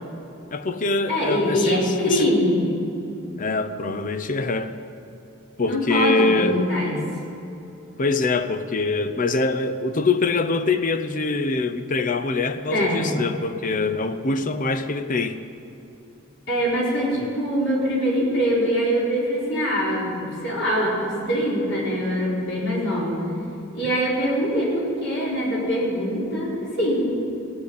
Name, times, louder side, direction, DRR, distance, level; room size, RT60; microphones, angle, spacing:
voice 1, 0.5-2.3 3.4-4.7 5.6-6.6 8.0-15.4 17.1-17.2, left 3 dB, 40° left, 0.6 m, -24 dB
voice 2, 1.1-2.7 5.6-7.1 12.7-13.2 16.5-23.2 23.7-27.2, equal, 60° left, 4.2 m, -23 dB
16.0 x 8.3 x 8.3 m
head